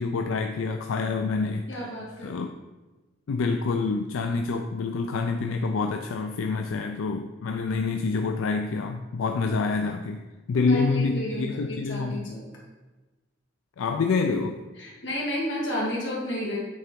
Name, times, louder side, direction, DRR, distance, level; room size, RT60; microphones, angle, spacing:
voice 1, 0.0-1.9 2.2-2.5 3.3-10.2 10.5-12.2 13.8-14.6, left 4 dB, 90° left, 5 dB, 0.4 m, -27 dB
voice 2, 1.7-2.3 10.6-12.4 14.8-16.6, equal, 65° left, -4 dB, 2.0 m, -32 dB
8.7 x 3.3 x 4.5 m, 1.2 s
head